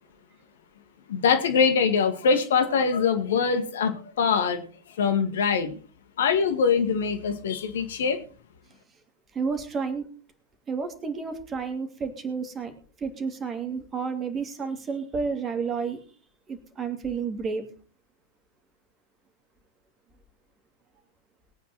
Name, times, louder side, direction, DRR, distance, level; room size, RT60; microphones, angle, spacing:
voice 1, 1.1-4.6 5.0-5.8 6.2-8.2, left 6 dB, 60° left, 8 dB, 1.8 m, -23 dB
voice 2, 9.3-10.1 10.7-12.7 13.0-16.0 16.5-17.7, right 5 dB, 20° right, 6 dB, 2.7 m, -31 dB
22.0 x 9.3 x 3.1 m, 0.40 s
figure-of-eight pair, 90°, 0 cm